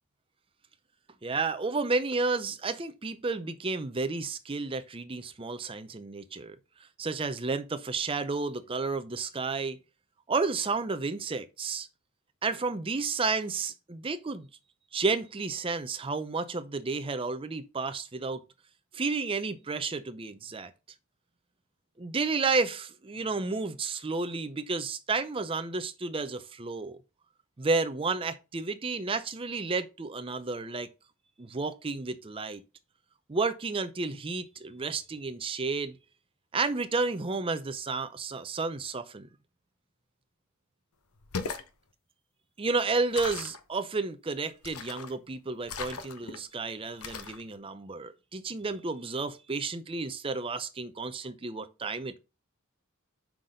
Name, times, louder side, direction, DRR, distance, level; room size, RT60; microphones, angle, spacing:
voice 1, 1.2-6.6 7.0-9.8 10.3-11.9 12.4-14.5 14.9-18.4 18.9-20.7 22.0-27.0 27.6-30.9 31.4-32.6 33.3-36.0 36.5-39.3 42.6-52.2, right 4 dB, 25° right, 0.5 m, -31 dB
sound 1, 41.2-41.7 43.1-43.6 44.6-45.1 45.7-46.4 47.0-47.4, left 5 dB, 90° left, 0.8 m, -37 dB
5.9 x 3.9 x 4.9 m
head